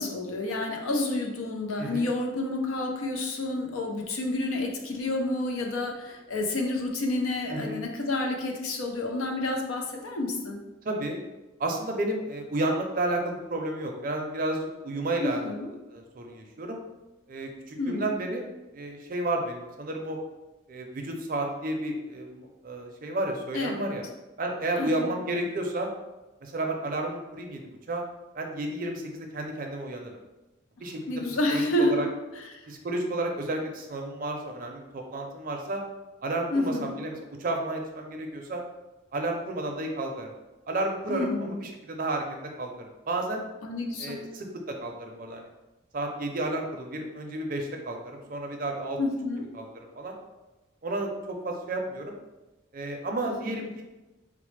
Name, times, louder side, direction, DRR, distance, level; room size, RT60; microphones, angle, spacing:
voice 1, 0.0-10.6 15.2-15.7 17.8-18.2 23.5-24.0 24.8-25.1 31.1-32.0 32.3-32.6 36.5-36.9 41.1-41.6 43.6-44.2 49.0-49.4 53.2-53.6, left 2 dB, 90° left, 2 dB, 0.6 m, -29 dB
voice 2, 7.5-7.8 10.8-11.2 11.6-15.5 15.9-16.8 17.3-18.5 18.7-20.2 20.7-24.0 24.4-25.9 26.4-28.0 28.3-30.2 30.8-31.0 31.5-32.1 32.7-35.8 36.2-38.6 39.1-40.3 40.7-43.4 44.0-45.5 45.9-49.0 49.5-50.1 50.8-52.2 52.7-53.8, right 2 dB, 45° right, 2 dB, 0.4 m, -32 dB
4.0 x 2.0 x 3.1 m, 1.1 s
head